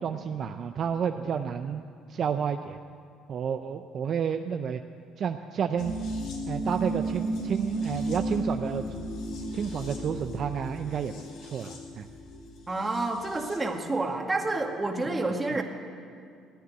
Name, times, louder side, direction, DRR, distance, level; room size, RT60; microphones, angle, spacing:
voice 1, 0.0-1.8 2.1-2.8 3.3-4.8 5.2-5.9 6.5-8.8 9.5-11.1 11.4-12.1, right 7 dB, 50° right, 7 dB, 0.6 m, -30 dB
sound 1, 5.8-13.7 14.0-14.1, right 1 dB, 75° left, 2.9 m, -34 dB
voice 2, 12.7-15.6, right 2 dB, 20° right, 3 dB, 1.9 m, -29 dB
15.0 x 9.4 x 9.5 m, 2.3 s
supercardioid pair, 90°, 0 cm